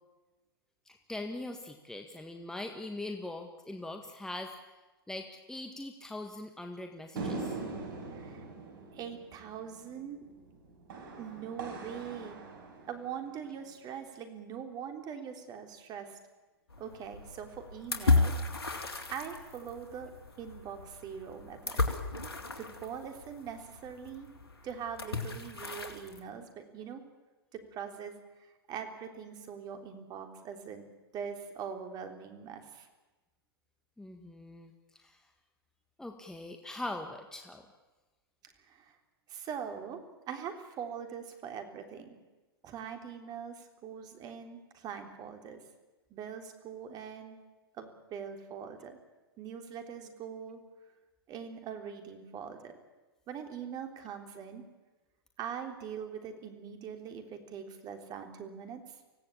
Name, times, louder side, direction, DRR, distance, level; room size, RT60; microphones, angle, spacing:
voice 1, 0.9-4.5 5.1-7.6 34.0-35.3 36.0-37.7, left 2 dB, 5° left, 4 dB, 1.7 m, -42 dB
sound 1, 7.2-13.7, right 3 dB, 55° right, 5.3 m, -42 dB
voice 2, 8.1-8.5 8.9-10.3 11.2-12.4 12.9-16.2 16.8-18.3 19.1-20.1 20.4-21.8 22.6-24.3 24.6-27.0 27.5-28.2 28.7-30.8 31.1-32.9 38.7-38.9 39.3-42.1 42.6-45.6 46.1-47.4 47.8-49.0 49.4-50.6 51.3-52.7 53.3-54.6 55.4-58.8, right 7 dB, 30° right, 6 dB, 3.5 m, -42 dB
sound 2, 16.7-26.2, left 3 dB, 80° left, 3.0 m, -34 dB
25.5 x 17.0 x 8.6 m, 1.2 s
figure-of-eight pair, 110°, 13 cm